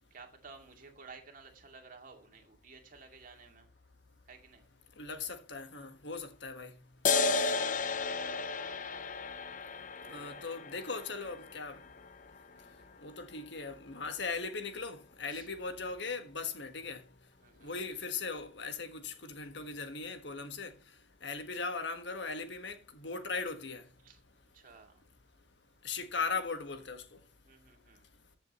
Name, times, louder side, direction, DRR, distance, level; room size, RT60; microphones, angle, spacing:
voice 1, 0.0-3.7 4.3-4.7 10.0-10.5 12.5-13.2 15.3-15.5 17.4-17.8 21.2-21.3 24.0-24.2 24.5-25.0 27.4-28.1, right 4 dB, 45° right, 2.5 m, -55 dB
voice 2, 5.0-6.7 7.3-7.5 10.1-11.8 13.0-17.0 17.6-20.7 21.2-23.8 25.8-27.2, left 4 dB, 60° left, 1.6 m, -39 dB
sound 1, 7.1-14.0, left 4 dB, 40° left, 0.8 m, -34 dB
14.5 x 7.4 x 3.1 m
head